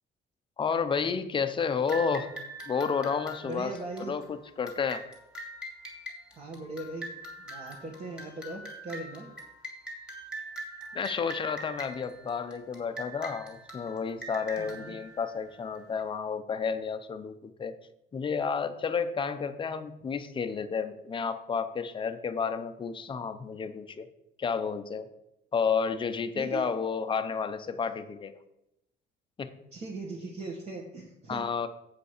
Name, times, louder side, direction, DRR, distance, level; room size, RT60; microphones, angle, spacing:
voice 1, 0.6-2.3 2.7-3.7 4.1-5.0 10.9-17.7 18.1-24.1 24.4-25.1 25.5-28.4 29.4-29.5 31.3-31.7, left 6 dB, 25° left, 9 dB, 0.7 m, -31 dB
sound 1, 1.9-16.0, right 1 dB, 5° right, 2.2 m, -43 dB
voice 2, 3.4-4.2 6.3-7.1 7.4-9.3 14.6-15.0 26.3-26.6 29.7-31.4, right 2 dB, 35° right, -2 dB, 1.7 m, -39 dB
8.1 x 5.3 x 6.6 m, 0.83 s
cardioid pair, 145°, 19 cm